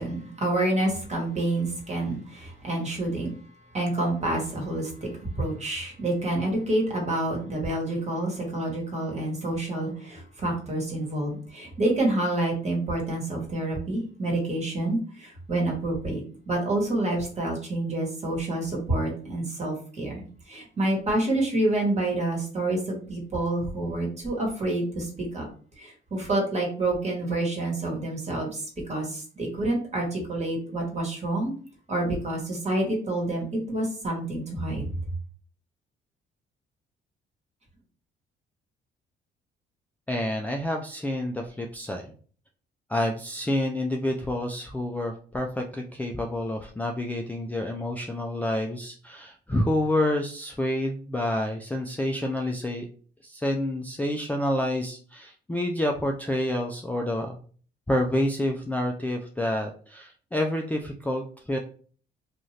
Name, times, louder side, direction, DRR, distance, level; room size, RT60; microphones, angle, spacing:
voice 1, 0.0-3.3 3.7-4.9 5.2-20.2 20.5-25.5 25.8-31.5 31.9-34.9, right 2 dB, 35° right, 0 dB, 1.4 m, -28 dB
voice 2, 40.1-42.0 42.9-52.9 53.2-57.4 57.9-61.6, left 1 dB, 10° left, 2 dB, 0.4 m, -28 dB
2.6 x 2.4 x 3.1 m, 0.43 s
cardioid pair, 90°, 20 cm